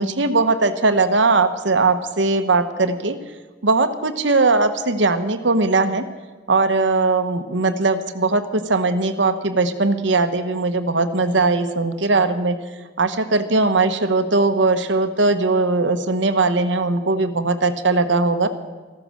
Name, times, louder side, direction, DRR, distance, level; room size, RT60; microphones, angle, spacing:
voice 1, 0.0-3.2 3.6-6.1 6.5-12.6 13.0-18.5, right 3 dB, 75° right, 9 dB, 1.2 m, -19 dB
15.0 x 13.5 x 6.4 m, 1.4 s
head